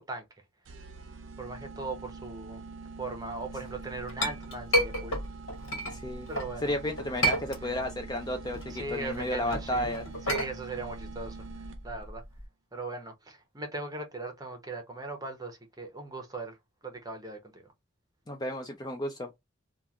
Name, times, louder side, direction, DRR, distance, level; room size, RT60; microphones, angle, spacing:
sound 1, 0.7-12.1, right 4 dB, 65° right, 0.6 m, -45 dB
voice 1, 1.4-2.6 3.0-5.1 6.3-6.7 7.6-7.8 8.7-9.9 10.3-12.2 12.7-16.5 16.8-17.6, right 3 dB, 20° right, 0.7 m, -39 dB
Chink clink, 3.7-6.5 7.0-8.0 8.4-12.5, right 1 dB, 75° left, 1.3 m, -32 dB
voice 2, 5.9-6.3 6.6-10.1 18.3-19.3, left 1 dB, 20° left, 0.4 m, -33 dB
3.1 x 2.3 x 2.4 m
head